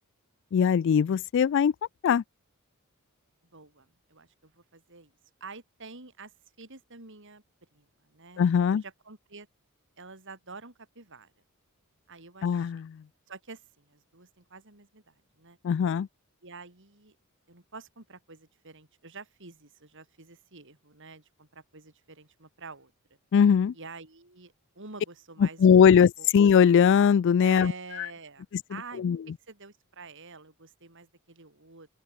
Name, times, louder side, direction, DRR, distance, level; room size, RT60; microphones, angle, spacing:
voice 1, 0.5-1.7 2.0-2.2 8.4-8.8 12.4-13.0 15.6-16.1 23.3-23.7 25.4-27.7 29.0-29.2, left 7 dB, 55° left, 0.3 m, -20 dB
voice 2, 3.5-5.1 5.4-6.3 6.6-7.4 7.7-8.4 8.7-9.5 10.0-11.3 12.1-12.8 13.3-15.6 16.4-17.2 17.5-22.9 23.7-25.9 26.2-26.3 27.4-29.0 29.5-31.9, right 4 dB, 60° right, 4.3 m, -47 dB
open air
head